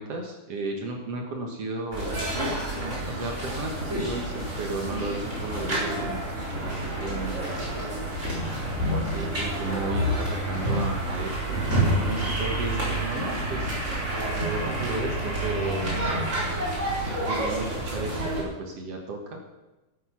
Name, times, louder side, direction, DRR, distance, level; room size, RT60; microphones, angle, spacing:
voice 1, 0.0-2.1 3.1-8.0 8.8-11.6 12.0-13.8 14.3-16.0 17.1-19.4, right 2 dB, 55° right, 2 dB, 2.0 m, -34 dB
sound 1, 1.9-18.4, right 1 dB, 20° right, 4.3 m, -28 dB
13.0 x 9.2 x 5.9 m, 1.0 s
omnidirectional pair, 4.2 m